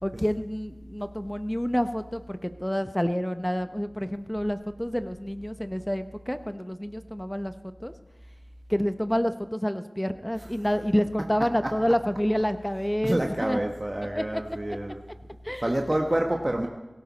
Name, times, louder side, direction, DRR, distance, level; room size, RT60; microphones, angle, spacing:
voice 1, 0.0-7.5 7.8-7.9 8.7-13.6 14.1-14.4 14.7-14.8 15.4-15.7, equal, 10° left, 10 dB, 0.9 m, -28 dB
voice 2, 13.0-15.0 15.6-16.7, right 1 dB, 30° right, 2 dB, 1.3 m, -27 dB
18.0 x 17.0 x 4.2 m, 1.1 s
wide cardioid pair, 55°, 0 cm